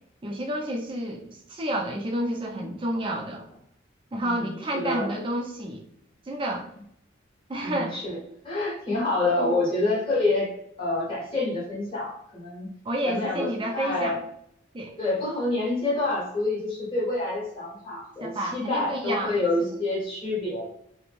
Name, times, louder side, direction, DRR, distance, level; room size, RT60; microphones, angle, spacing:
voice 1, 0.2-3.4 4.1-5.8 6.3-6.7 7.5-8.0 9.3-9.5 12.8-14.2 14.7-15.0 18.2-19.4, right 1 dB, 25° right, 2 dB, 0.4 m, -30 dB
voice 2, 4.2-5.1 7.6-8.2 8.4-10.5 10.8-12.7 13.0-14.2 15.0-20.7, left 2 dB, 25° left, -7 dB, 1.2 m, -27 dB
3.0 x 2.1 x 2.5 m, 0.71 s
head